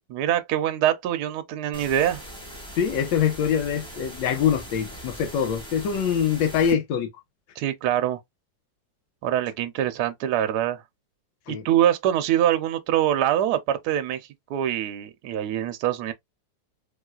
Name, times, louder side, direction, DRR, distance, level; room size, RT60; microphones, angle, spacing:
voice 1, 0.1-2.2 7.6-8.2 9.2-10.8 11.5-14.2 14.5-16.1, right 11 dB, 70° right, 1.0 m, -24 dB
sound 1, 1.7-6.7, equal, 5° left, 1.1 m, -41 dB
voice 2, 2.8-7.1 11.5-11.7, left 8 dB, 85° left, 1.4 m, -24 dB
3.3 x 3.1 x 2.3 m
omnidirectional pair, 2.0 m